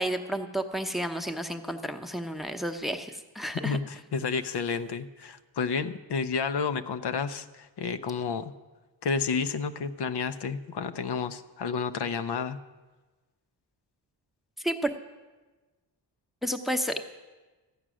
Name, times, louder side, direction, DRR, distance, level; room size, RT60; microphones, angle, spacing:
voice 1, 0.0-3.8 14.6-14.9 16.4-17.0, right 1 dB, ahead, 7 dB, 0.8 m, -31 dB
voice 2, 3.6-8.5 9.0-12.6, left 5 dB, 65° left, 10 dB, 0.7 m, -31 dB
14.0 x 8.8 x 6.2 m, 1.2 s
cardioid pair, 90°, 43 cm